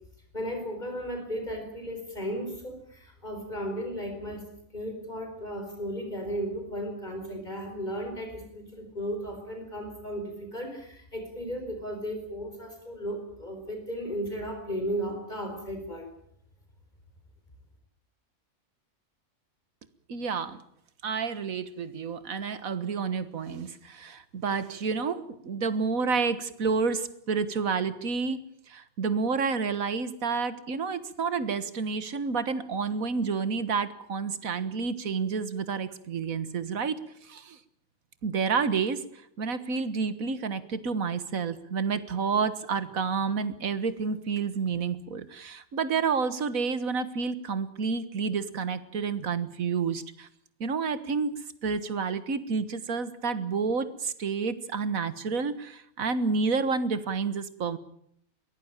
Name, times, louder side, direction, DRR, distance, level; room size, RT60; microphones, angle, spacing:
voice 1, 0.3-4.4 4.7-16.1, equal, 30° left, 4 dB, 4.7 m, -35 dB
voice 2, 20.1-20.6 21.0-28.4 28.7-37.0 37.2-37.6 38.2-39.0 39.4-50.3 50.6-51.3 51.6-57.8, right 5 dB, 75° right, 13 dB, 1.9 m, -29 dB
23.0 x 17.5 x 8.9 m, 0.67 s
omnidirectional pair, 1.5 m